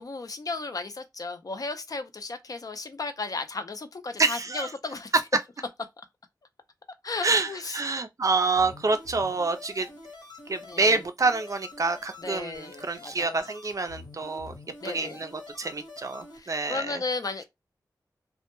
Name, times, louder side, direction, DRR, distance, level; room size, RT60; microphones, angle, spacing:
voice 1, 0.0-5.1 7.0-7.8 10.6-11.0 12.2-13.5 14.8-15.2 16.3-17.4, left 3 dB, 55° left, 0.4 m, -35 dB
voice 2, 4.2-4.7 7.2-9.9 10.5-14.6 14.8-15.3 15.6-17.0, right 3 dB, 45° right, 0.4 m, -27 dB
sound 1, 8.5-16.4, left 3 dB, 75° left, 1.0 m, -47 dB
2.1 x 2.0 x 2.9 m
wide cardioid pair, 65°, 8 cm